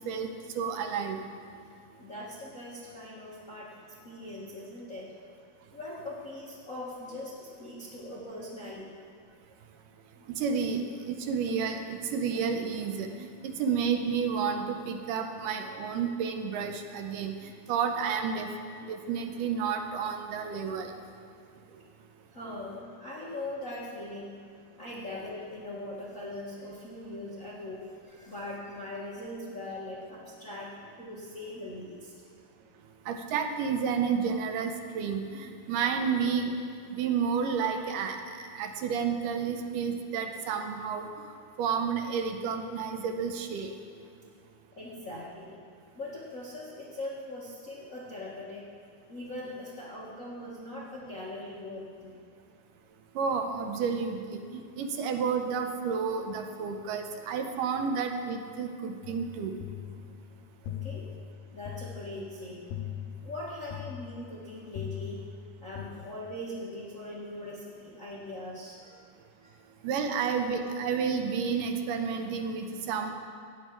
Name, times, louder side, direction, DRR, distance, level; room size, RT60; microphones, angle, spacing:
voice 1, 0.6-1.2 10.4-18.5 18.9-20.9 33.1-36.5 36.9-38.2 38.5-41.1 41.6-43.7 53.2-59.5 69.8-73.1, right 6 dB, 80° right, 5 dB, 2.3 m, -31 dB
voice 2, 2.0-5.1 5.7-8.9 10.1-10.3 22.3-24.4 24.8-32.2 44.8-45.6 45.9-48.7 49.1-52.2 60.7-61.2 61.5-62.6 63.2-65.2 65.6-69.0 69.4-69.6 70.0-70.1, left 1 dB, 45° left, -7 dB, 1.1 m, -41 dB
sound 1, 59.0-65.9, left 10 dB, 85° left, 2.3 m, -41 dB
15.5 x 9.4 x 4.7 m, 2.4 s
omnidirectional pair, 3.9 m